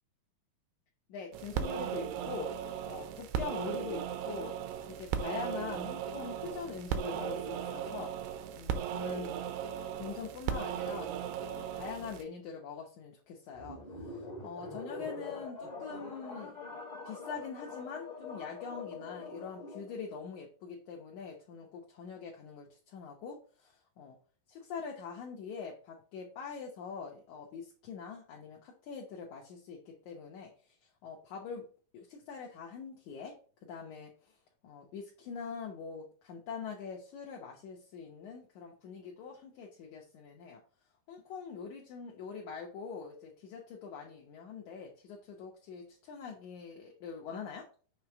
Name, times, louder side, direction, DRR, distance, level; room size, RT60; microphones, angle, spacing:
voice 1, 1.1-2.5 2.9-4.5 4.9-8.1 8.5-9.3 10.0-16.6 17.0-24.2 24.5-31.7 31.9-33.4 33.6-34.4 34.6-40.6 41.1-47.7, left 6 dB, 75° left, -1 dB, 1.8 m, -44 dB
sound 1, 1.3-12.2, right 8 dB, 80° right, 2.7 m, -37 dB
sound 2, 13.6-20.0, left 3 dB, 25° left, 0.9 m, -44 dB
7.1 x 3.1 x 5.8 m, 0.40 s
omnidirectional pair, 4.6 m